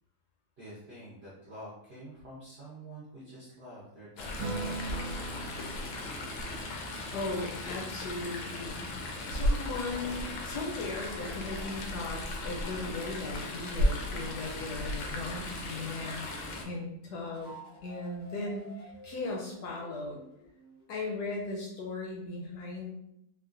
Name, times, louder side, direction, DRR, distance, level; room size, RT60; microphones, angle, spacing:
voice 1, 0.6-5.7, right 1 dB, 60° right, -8 dB, 0.6 m, -48 dB
Chatter / Stream, 4.2-16.6, left 1 dB, 90° left, 1.4 m, -35 dB
Acoustic guitar / Strum, 4.4-9.2, right 2 dB, 75° right, 1.2 m, -42 dB
voice 2, 7.1-8.9 9.3-16.3 16.7-20.2 20.9-22.9, left 3 dB, 70° left, -1 dB, 1.0 m, -37 dB
sound 1, 17.2-20.9, right 1 dB, 55° left, 0.5 m, -55 dB
3.7 x 2.3 x 2.4 m, 0.81 s
omnidirectional pair, 2.1 m